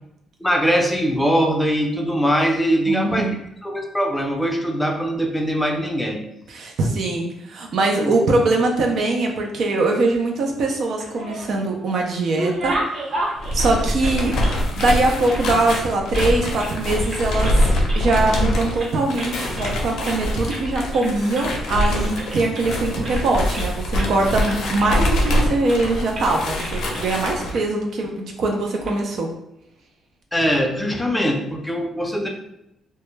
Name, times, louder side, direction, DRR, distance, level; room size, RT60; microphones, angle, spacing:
voice 1, 0.4-3.3 3.6-6.2 8.0-8.1 30.3-32.3, equal, 10° left, 2 dB, 0.5 m, -21 dB
voice 2, 2.9-3.4 6.5-13.2 13.5-14.3 14.8-17.5 17.9-29.3, right 2 dB, 70° right, 1 dB, 0.4 m, -22 dB
sound 1, 10.8-11.7 12.0-15.0 15.2-16.3 16.6-16.8 17.0-17.6 17.9-18.5 18.8-19.8 20.0-20.2 20.5-20.7 20.9-21.5 21.8-23.7 24.0-24.1 24.4-25.3 25.7-25.9 26.1-26.3 26.6-27.2 27.5-27.6 28.6-28.9, right 1 dB, 50° right, 0.8 m, -32 dB
sound 2, 13.4-27.5, left 1 dB, 80° left, 0.5 m, -24 dB
2.1 x 2.1 x 3.1 m, 0.81 s
cardioid pair, 90°, 0 cm